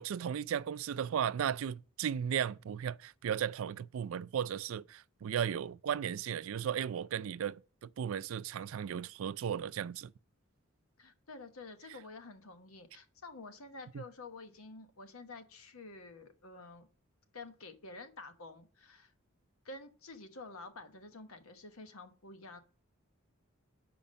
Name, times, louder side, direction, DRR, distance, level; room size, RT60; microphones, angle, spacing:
voice 1, 0.0-10.1 13.9-14.0, right 8 dB, 70° right, 0.3 m, -35 dB
voice 2, 11.0-16.9 17.3-19.1 19.6-22.6, left 3 dB, 80° left, 1.1 m, -49 dB
7.1 x 5.1 x 5.1 m
head